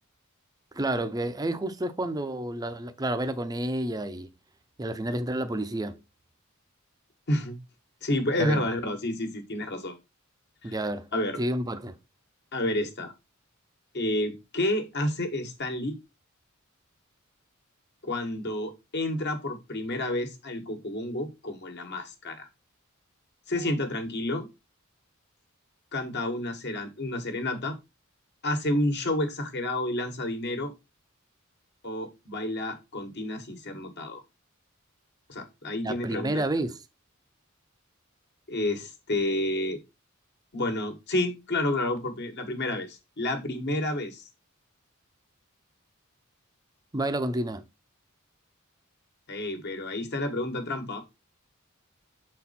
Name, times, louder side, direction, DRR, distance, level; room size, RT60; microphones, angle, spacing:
voice 1, 0.7-4.3 4.8-6.0 8.4-8.7 10.6-11.1 11.4-11.9 35.8-36.8 46.9-47.6, right 1 dB, 20° right, 0.6 m, -30 dB
voice 2, 8.0-10.0 10.6-10.8 11.1-11.4 12.5-13.1 13.9-16.0 18.0-22.5 23.5-24.5 25.9-27.7 28.4-30.7 31.8-34.2 35.3-36.4 38.5-39.8 40.5-44.2 49.3-51.0, left 1 dB, 55° left, 1.4 m, -30 dB
6.6 x 4.2 x 4.2 m
head